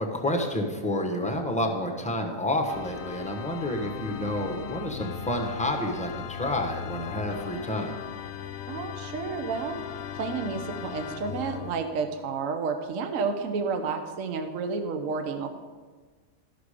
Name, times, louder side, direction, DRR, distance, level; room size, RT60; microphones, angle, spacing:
voice 1, 0.0-8.0, left 1 dB, 5° left, 2 dB, 0.8 m, -29 dB
Organ, 2.7-11.8, left 9 dB, 65° left, 0.7 m, -38 dB
voice 2, 8.7-9.8 10.1-15.6, right 5 dB, 65° right, 6 dB, 1.1 m, -31 dB
13.5 x 6.0 x 4.9 m, 1.4 s
omnidirectional pair, 1.6 m